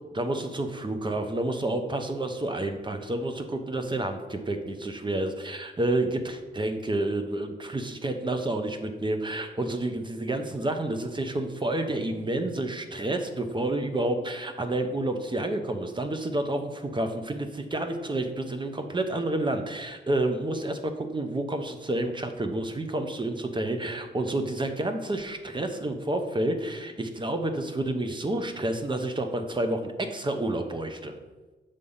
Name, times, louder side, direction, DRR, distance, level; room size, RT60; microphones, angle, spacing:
voice 1, 0.1-31.1, right 1 dB, 25° right, 6 dB, 0.7 m, -29 dB
6.9 x 3.4 x 5.5 m, 1.2 s
wide cardioid pair, 90°, 19 cm